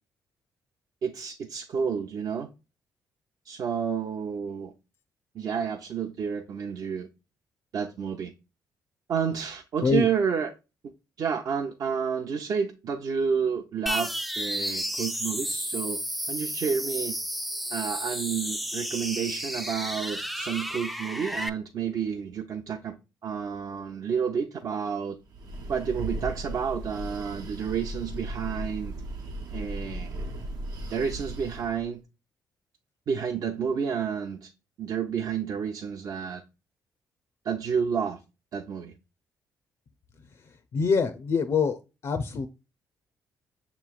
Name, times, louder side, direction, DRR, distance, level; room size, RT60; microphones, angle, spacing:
voice 1, 1.0-2.5 3.4-4.7 5.3-7.1 7.7-8.3 9.1-10.5 11.2-16.0 16.3-17.2 17.7-23.0 23.2-25.2 25.7-28.9 29.5-30.2 30.9-32.0 33.1-34.5 34.8-36.4 37.4-38.2 38.5-38.9, right 7 dB, 55° right, 0.6 m, -30 dB
sound 1, 13.9-21.5, equal, ahead, 0.3 m, -32 dB
Breathing, 25.2-31.8, right 1 dB, 80° right, 0.9 m, -36 dB
voice 2, 40.7-41.8 42.0-42.5, left 5 dB, 55° left, 0.5 m, -24 dB
6.7 x 3.1 x 2.2 m
cardioid pair, 95°, 7 cm